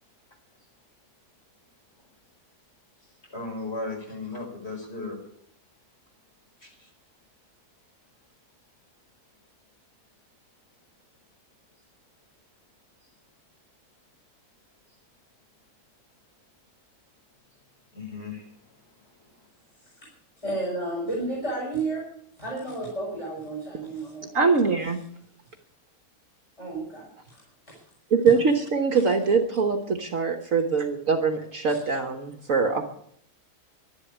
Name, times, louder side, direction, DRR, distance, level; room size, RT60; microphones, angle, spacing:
voice 1, 3.3-5.2 6.6-6.9 18.0-18.5, left 3 dB, 40° left, 1 dB, 5.2 m, -35 dB
voice 2, 20.4-22.0 22.4-24.3 26.6-27.4 27.7-27.8 31.7-31.8, right 2 dB, 20° left, -4 dB, 5.3 m, -32 dB
voice 3, 24.3-25.0 28.1-32.9, right 5 dB, 60° right, 5 dB, 1.5 m, -23 dB
12.0 x 11.5 x 9.8 m, 0.68 s
omnidirectional pair, 1.7 m